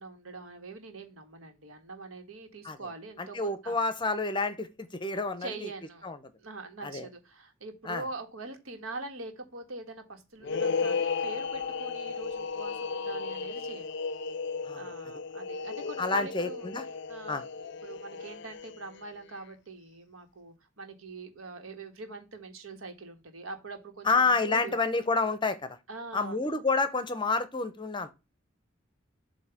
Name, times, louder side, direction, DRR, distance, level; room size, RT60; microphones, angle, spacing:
voice 1, 0.0-3.8 5.4-6.1 6.4-13.9 14.7-16.7 17.1-24.8 25.9-26.4 28.0-28.1, right 2 dB, 85° right, 1.6 m, -43 dB
voice 2, 3.2-5.7 6.0-6.2 6.8-7.1 7.8-8.0 14.6-14.9 16.0-16.8 17.3-17.4 24.0-25.8 26.1-28.1, left 3 dB, 25° left, 0.7 m, -29 dB
sound 1, 10.4-19.0, left 5 dB, 60° left, 0.5 m, -34 dB
7.8 x 2.8 x 5.8 m
head